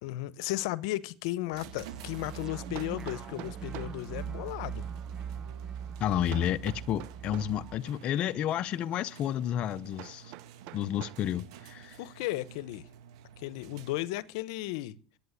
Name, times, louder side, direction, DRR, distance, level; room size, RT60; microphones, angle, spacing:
voice 1, 0.0-4.9 12.0-12.8 13.4-14.9, left 17 dB, 70° left, 0.8 m, -35 dB
Hammer, 1.1-1.2 2.7-4.0 6.3-7.6 10.0-11.3, right 14 dB, 55° right, 0.7 m, -46 dB
sound 1, 1.5-7.8, right 7 dB, 20° right, 0.7 m, -41 dB
sound 2, 1.5-14.3, right 9 dB, 75° right, 1.3 m, -51 dB
voice 2, 6.0-10.3 10.7-12.0, left 10 dB, 40° left, 0.6 m, -31 dB
10.5 x 8.5 x 9.7 m
supercardioid pair, 140°, 3 cm